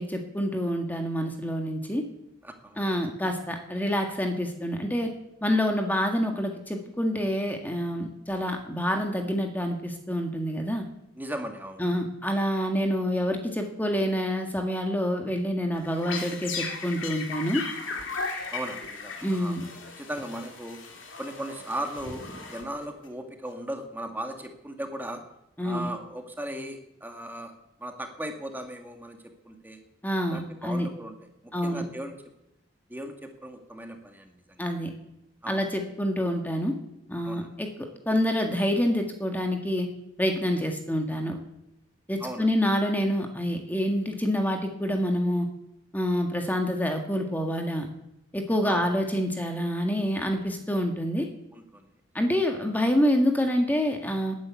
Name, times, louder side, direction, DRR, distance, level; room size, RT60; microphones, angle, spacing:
voice 1, 0.0-2.0 2.8-5.1 5.4-10.8 11.8-17.6 19.2-19.6 25.6-25.9 30.0-30.9 31.5-31.8 34.6-34.9 35.5-36.7 37.1-39.9 40.2-41.4 42.1-45.5 45.9-47.9 48.3-51.3 52.1-54.4, equal, 10° left, 3 dB, 1.7 m, -27 dB
voice 2, 2.4-2.8 11.2-11.8 18.5-19.5 20.0-20.8 21.2-25.2 25.6-27.5 27.8-29.2 29.4-29.8 30.3-31.1 31.4-32.1 32.9-34.6 35.4-35.6 37.2-37.5 42.2-42.5 48.6-48.9 51.5-51.9, right 1 dB, 10° right, 4 dB, 1.8 m, -37 dB
sound 1, 15.7-23.1, left 4 dB, 75° left, 3.0 m, -37 dB
13.5 x 10.0 x 9.7 m, 0.85 s
head